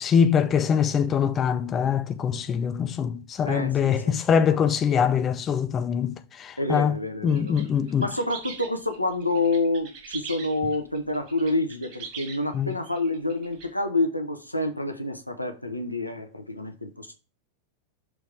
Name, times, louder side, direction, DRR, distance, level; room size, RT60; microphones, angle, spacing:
voice 1, 0.0-6.1 6.4-6.9 7.2-8.1 12.5-12.7, left 7 dB, 25° left, 0.5 m, -23 dB
voice 2, 3.4-4.2 6.6-7.7 8.0-17.1, left 2 dB, 85° left, 0.7 m, -28 dB
sound 1, 7.3-13.7, right 6 dB, 45° right, 2.0 m, -42 dB
6.2 x 3.4 x 4.7 m
figure-of-eight pair, 90°, 0 cm